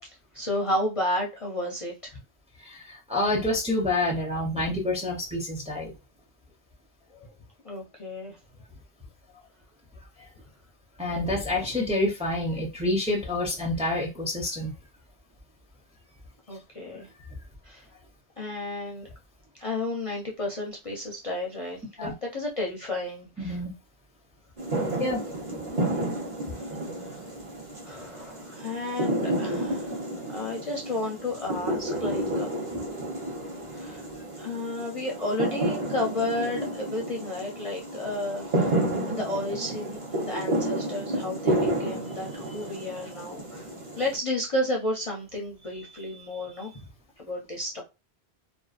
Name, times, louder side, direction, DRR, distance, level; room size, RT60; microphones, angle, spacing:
voice 1, 0.0-2.2 7.1-7.3 7.6-8.4 16.5-17.1 17.6-17.8 18.4-19.1 19.6-23.6 26.5-26.7 27.0-27.2 27.8-32.6 33.7-34.0 34.4-38.7 39.1-43.7 43.9-46.9 47.2-47.8, left 1 dB, 40° left, 0.5 m, -32 dB
voice 2, 2.6-5.9 11.0-14.7 22.0-22.1 23.4-23.7 25.0-25.2, left 2 dB, 10° right, 0.5 m, -28 dB
sound 1, 24.6-44.2, right 1 dB, 35° right, 0.8 m, -31 dB
2.5 x 2.3 x 2.3 m
omnidirectional pair, 1.1 m